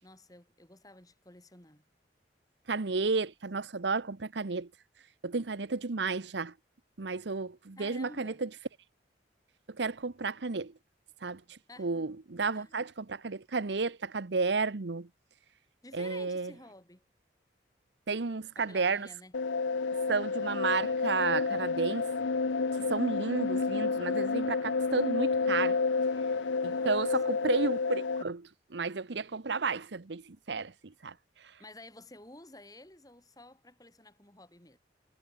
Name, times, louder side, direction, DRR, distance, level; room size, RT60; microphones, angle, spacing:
voice 1, 0.0-1.9 7.8-8.4 11.7-12.1 12.5-12.7 15.8-17.1 18.6-19.4 26.6-27.4 31.6-34.8, left 2 dB, 20° left, 5.9 m, -52 dB
voice 2, 2.7-4.7 5.2-6.5 7.0-8.5 9.7-10.7 11.2-15.1 15.9-16.5 18.1-19.1 20.1-22.1 22.7-25.8 26.6-31.5, right 4 dB, 70° right, 0.9 m, -32 dB
sound 1, 19.3-28.2, left 4 dB, 90° left, 0.7 m, -30 dB
head